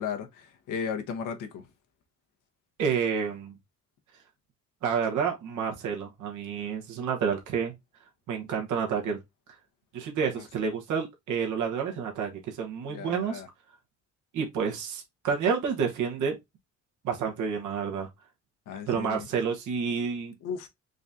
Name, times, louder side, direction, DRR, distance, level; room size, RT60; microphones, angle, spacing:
voice 1, 0.0-1.7 12.9-13.5 18.7-19.3 20.4-20.7, left 6 dB, 85° left, 1.0 m, -35 dB
voice 2, 2.8-3.5 4.8-7.7 8.3-9.2 9.9-13.4 14.3-16.3 17.0-18.1 18.9-20.3, right 6 dB, 75° right, 1.2 m, -29 dB
3.9 x 2.7 x 3.5 m
cardioid pair, 90°, 30 cm